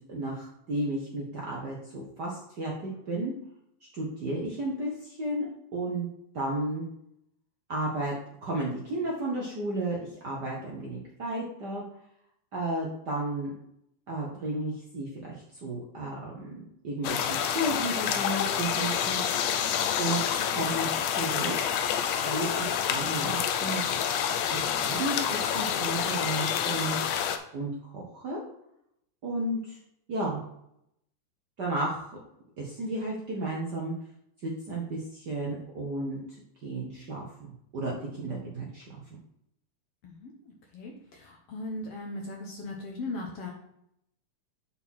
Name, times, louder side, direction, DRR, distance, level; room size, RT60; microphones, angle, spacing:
voice 1, 0.1-2.7 3.1-3.3 3.9-6.1 6.3-6.8 7.7-8.1 8.4-11.8 12.5-13.5 14.1-19.2 20.0-21.5 22.2-23.8 24.5-27.0 27.5-28.4 29.2-29.8 30.1-30.4 31.6-32.1 32.6-33.9 34.4-36.2 36.6-37.3 37.7-39.0, right 2 dB, 65° right, -3 dB, 1.0 m, -33 dB
sound 1, 17.0-27.4, left 8 dB, 80° left, 1.5 m, -28 dB
voice 2, 40.0-43.5, left 2 dB, 65° left, 0 dB, 1.7 m, -38 dB
6.8 x 4.4 x 5.6 m, 0.77 s
omnidirectional pair, 3.6 m